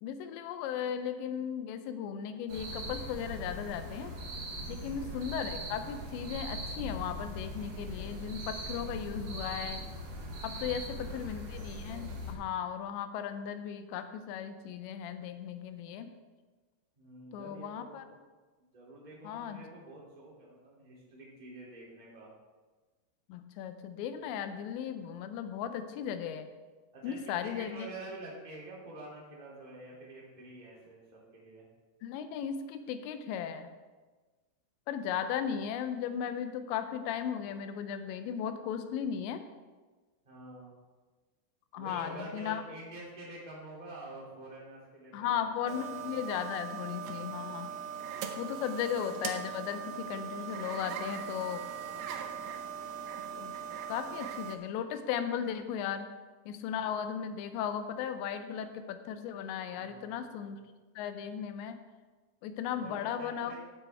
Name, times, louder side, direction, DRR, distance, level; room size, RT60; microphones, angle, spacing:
voice 1, 0.0-4.1 4.7-9.9 10.4-16.1 17.3-18.1 19.2-19.6 23.3-26.5 27.0-27.9 32.0-33.7 34.9-39.4 41.7-42.6 45.1-47.7 48.4-51.6 53.4-53.5 53.9-56.1 56.5-60.6 61.0-61.8 62.4-63.6, left 8 dB, 85° left, 9 dB, 3.0 m, -36 dB
sound 1, 2.5-12.3, equal, 60° right, 3.4 m, -40 dB
voice 2, 4.7-5.1 11.0-11.3 17.0-18.0 18.7-22.3 26.9-31.6 40.2-40.7 41.7-46.0 51.6-52.3 59.7-60.3 62.7-63.6, right 1 dB, 15° right, -5 dB, 1.8 m, -48 dB
sound 2, 45.7-54.6, right 8 dB, 80° right, 2.1 m, -40 dB
15.0 x 7.8 x 3.5 m, 1.3 s
omnidirectional pair, 5.1 m